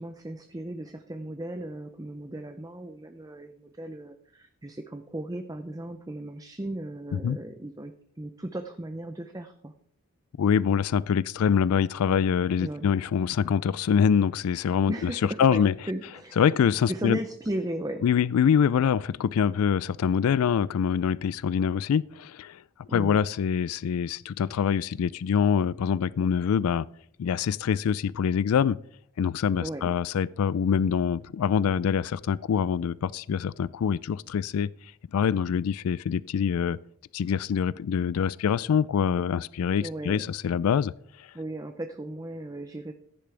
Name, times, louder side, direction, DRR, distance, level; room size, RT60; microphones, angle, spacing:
voice 1, 0.0-9.7 12.6-12.9 14.9-16.5 16.9-18.0 22.9-23.2 29.6-29.9 39.8-40.2 41.3-42.9, right 1 dB, 15° right, 0.5 m, -36 dB
voice 2, 10.4-15.7 16.4-17.2 18.0-22.6 22.9-26.9 27.2-28.8 29.2-34.7 35.1-36.8 37.1-40.9 41.2-41.3, left 7 dB, 80° left, 0.3 m, -25 dB
15.5 x 10.5 x 3.3 m
head